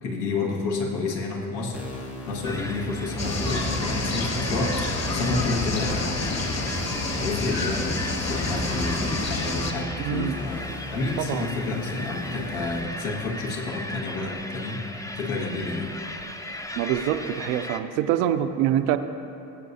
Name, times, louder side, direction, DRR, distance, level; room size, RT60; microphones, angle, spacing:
voice 1, 0.0-6.7 7.2-14.8 15.2-15.9, left 3 dB, 70° left, 0 dB, 1.8 m, -30 dB
sound 1, 1.7-12.8, left 1 dB, 90° left, 1.9 m, -37 dB
sound 2, 2.4-17.8, left 1 dB, 5° left, 0.6 m, -37 dB
sound 3, 3.2-9.7, left 2 dB, 30° left, 1.5 m, -28 dB
voice 2, 10.0-10.4 11.2-11.5 16.8-19.0, right 11 dB, 75° right, 9 dB, 0.7 m, -25 dB
19.0 x 8.2 x 2.7 m, 2.7 s
hypercardioid pair, 60°, 50 cm